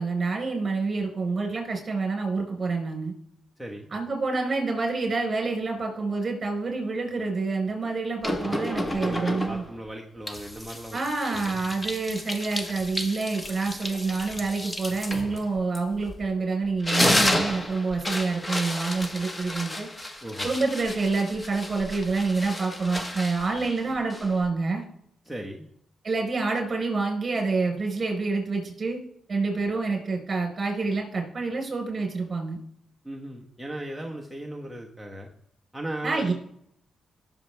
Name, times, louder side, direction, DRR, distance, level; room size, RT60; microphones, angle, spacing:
voice 1, 0.0-3.1 3.9-9.6 10.9-19.9 20.4-24.8 26.0-29.0 29.3-32.6 36.0-36.3, right 3 dB, 40° right, 2 dB, 4.6 m, -27 dB
voice 2, 3.6-3.9 8.4-11.0 11.3-11.5 20.2-20.5 25.2-25.7 33.0-35.3 35.7-36.3, right 1 dB, ahead, 1 dB, 1.4 m, -37 dB
sound 1, 8.2-9.8 10.3-16.3 16.7-24.5, left 1 dB, 15° left, 1.4 m, -31 dB
19.0 x 7.0 x 3.5 m, 0.71 s
cardioid pair, 85°, 0 cm